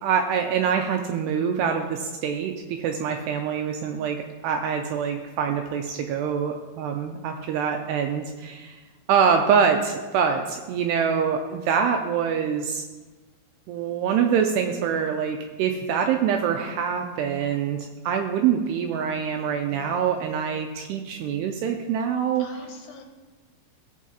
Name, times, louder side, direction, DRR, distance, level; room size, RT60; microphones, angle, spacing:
voice 1, 0.0-8.8 9.1-12.8 13.7-22.5, right 7 dB, 85° right, 4 dB, 2.4 m, -25 dB
voice 2, 19.7-20.5 22.4-23.0, left 6 dB, 75° left, 2 dB, 3.0 m, -46 dB
17.0 x 8.2 x 2.9 m, 1.3 s
omnidirectional pair, 5.3 m